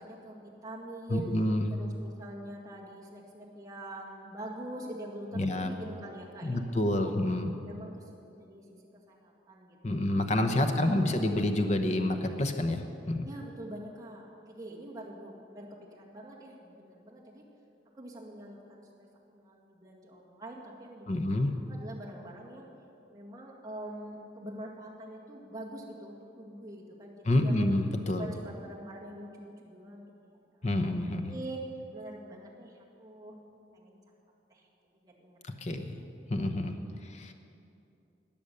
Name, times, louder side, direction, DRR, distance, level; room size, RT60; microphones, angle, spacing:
voice 1, 0.0-1.3 1.7-7.2 7.6-8.7 9.1-10.0 10.6-11.2 13.2-17.4 17.9-21.4 21.7-22.7 23.1-27.7 28.1-30.4 30.8-31.6 31.9-33.4 33.7-34.1 34.5-34.7 35.0-35.4, right 1 dB, 20° right, -4 dB, 2.0 m, -45 dB
voice 2, 1.1-1.7 5.3-5.7 6.4-7.5 9.8-13.2 21.1-21.5 27.2-28.3 30.6-31.3 35.6-36.0 36.3-37.3, left 1 dB, 40° left, 6 dB, 0.9 m, -28 dB
19.5 x 7.1 x 6.7 m, 2.7 s
head